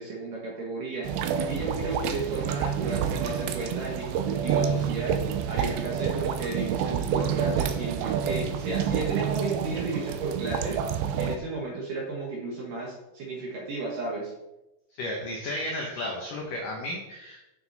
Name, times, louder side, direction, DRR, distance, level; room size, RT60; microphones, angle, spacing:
voice 1, 0.0-14.3, right 3 dB, 60° right, -3 dB, 2.3 m, -34 dB
sound 1, 1.0-11.4, right 8 dB, 85° right, 2.6 m, -28 dB
voice 2, 15.0-17.5, left 1 dB, 85° left, 0 dB, 1.8 m, -33 dB
9.4 x 6.3 x 4.1 m, 0.94 s
omnidirectional pair, 5.5 m